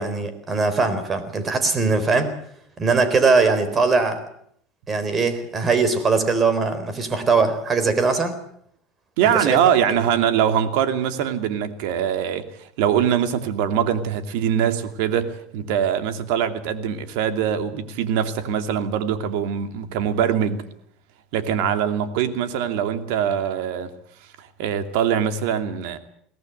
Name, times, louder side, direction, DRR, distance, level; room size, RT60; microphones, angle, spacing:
voice 1, 0.0-2.3 2.8-4.2 4.9-8.4 9.2-9.6, right 4 dB, 25° right, 11 dB, 4.0 m, -21 dB
voice 2, 9.2-20.6 21.3-23.9 24.4-26.0, right 9 dB, 75° right, 9 dB, 2.6 m, -23 dB
22.5 x 17.0 x 9.3 m, 0.68 s
supercardioid pair, 130°, 0 cm